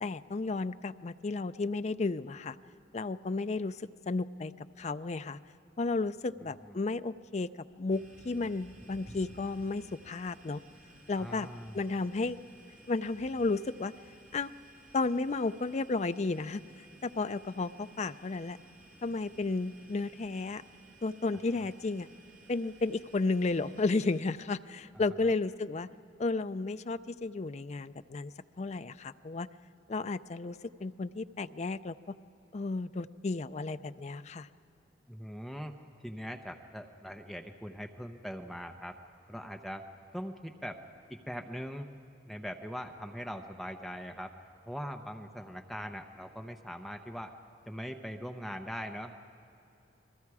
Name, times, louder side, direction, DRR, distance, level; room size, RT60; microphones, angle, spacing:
voice 1, 0.0-2.6 2.9-4.5 4.8-5.4 5.8-7.5 7.8-10.6 11.1-11.5 11.7-12.4 12.9-13.9 14.3-14.5 14.9-18.6 19.0-20.6 21.0-22.1 22.5-25.9 26.2-29.5 29.9-32.2 32.5-34.5, left 3 dB, 35° left, 12 dB, 0.4 m, -33 dB
voice 2, 6.4-6.8 11.2-11.8 21.5-21.6 25.1-25.3 35.1-35.8 36.0-39.0 39.3-39.9 40.1-40.8 41.1-41.9 42.2-44.3 44.7-47.3 47.7-49.3, equal, ahead, 4 dB, 0.7 m, -41 dB
sound 1, 7.9-24.2, right 1 dB, 45° right, 2.8 m, -56 dB
30.0 x 21.0 x 4.8 m, 2.8 s
head